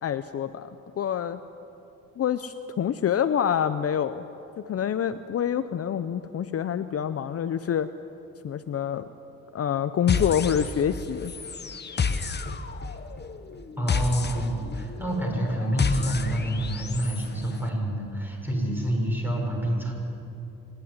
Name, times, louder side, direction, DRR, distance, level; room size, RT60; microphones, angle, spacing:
voice 1, 0.0-0.7 1.0-1.4 2.2-4.2 4.7-7.9 8.4-9.1 9.5-11.3, left 9 dB, 50° left, 11 dB, 0.7 m, -26 dB
sound 1, 10.1-11.0 11.2-17.3, left 5 dB, 35° left, 1.2 m, -30 dB
voice 2, 13.8-19.9, right 1 dB, 5° right, -1 dB, 6.2 m, -27 dB
25.0 x 11.5 x 9.6 m, 2.9 s
cardioid pair, 90°, 31 cm